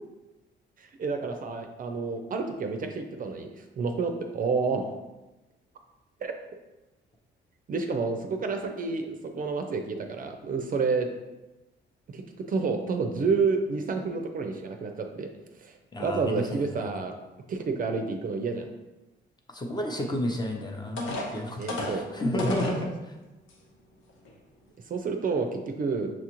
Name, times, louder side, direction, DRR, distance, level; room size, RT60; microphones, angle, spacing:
voice 1, 0.8-4.9 6.2-6.3 7.7-11.1 12.1-15.3 15.6-17.1 17.5-18.7 21.6-22.1 22.5-22.6 24.9-26.1, right 4 dB, 45° right, 4 dB, 0.5 m, -29 dB
voice 2, 15.9-16.6 19.5-21.6 21.9-23.1, left 1 dB, 20° left, 2 dB, 0.7 m, -31 dB
sound 1, 20.4-20.5 21.0-22.8 23.5-23.6 24.1-24.3, left 2 dB, 80° left, 0.8 m, -33 dB
6.0 x 2.4 x 2.9 m, 1.1 s
cardioid pair, 90°, 20 cm